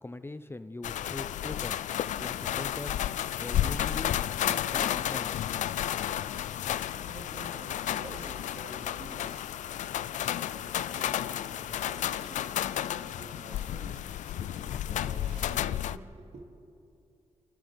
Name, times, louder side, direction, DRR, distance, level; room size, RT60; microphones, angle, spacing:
voice 1, 0.0-1.8 2.2-3.0 3.4-4.1 4.5-5.3, left 2 dB, 20° left, 0.7 m, -41 dB
sound 1, 0.8-16.0, left 11 dB, 90° left, 0.4 m, -32 dB
voice 2, 6.5-16.4, right 2 dB, 60° right, 2.9 m, -49 dB
30.0 x 25.0 x 3.6 m
cardioid pair, 65°, 12 cm